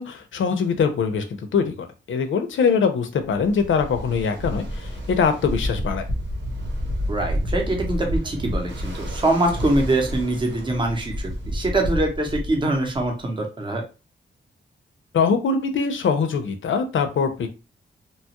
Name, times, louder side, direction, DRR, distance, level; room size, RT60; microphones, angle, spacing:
voice 1, 0.0-6.0 15.1-17.5, left 5 dB, 75° left, 7 dB, 0.5 m, -23 dB
Ocean, 3.4-13.2, equal, 65° right, 1.0 m, -29 dB
voice 2, 7.1-11.1 11.5-13.8, right 2 dB, 25° right, 2 dB, 0.7 m, -23 dB
2.9 x 2.3 x 2.8 m, 0.31 s
wide cardioid pair, 165°, 20 cm